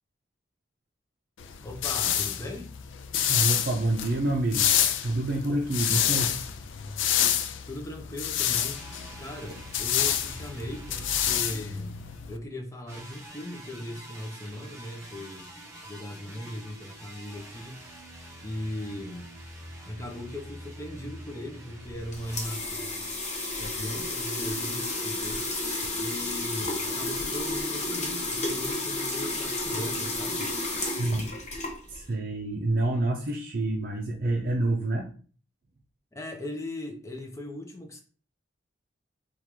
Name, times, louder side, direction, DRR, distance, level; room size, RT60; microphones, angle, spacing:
sound 1, 1.4-12.4, left 10 dB, 85° left, 0.4 m, -28 dB
voice 1, 1.6-2.7 7.7-8.8 9.2-12.0 12.3-15.5 15.8-17.8 18.4-19.3 19.8-23.0 23.6-25.5 26.0-30.5 36.1-38.0, left 1 dB, 15° left, 2 dB, 0.7 m, -38 dB
voice 2, 3.3-4.7 5.0-6.3 31.0-31.3 31.9-35.1, right 2 dB, 50° right, 0 dB, 0.6 m, -27 dB
sound 2, 8.5-12.2 12.9-22.6, right 1 dB, 15° right, 1.0 m, -46 dB
sound 3, 21.8-32.1, left 2 dB, 40° left, 1.0 m, -32 dB
3.6 x 2.4 x 4.5 m, 0.41 s
head